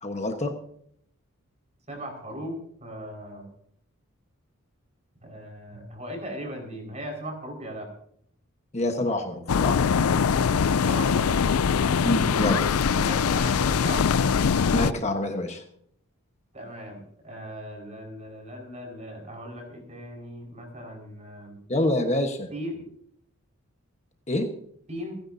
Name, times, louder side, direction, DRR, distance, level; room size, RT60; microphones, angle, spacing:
voice 1, 0.0-0.5 8.7-9.9 12.0-12.6 14.7-15.6 21.7-22.5 24.3-24.5, left 1 dB, 30° left, 4 dB, 1.2 m, -26 dB
voice 2, 1.9-3.5 5.2-7.9 10.8-11.4 12.9-14.1 16.5-21.6 22.5-22.8 24.9-25.2, equal, 30° right, 2 dB, 5.1 m, -38 dB
sound 1, 9.5-14.9, left 6 dB, 85° left, 0.5 m, -22 dB
29.5 x 10.5 x 2.7 m, 0.67 s
head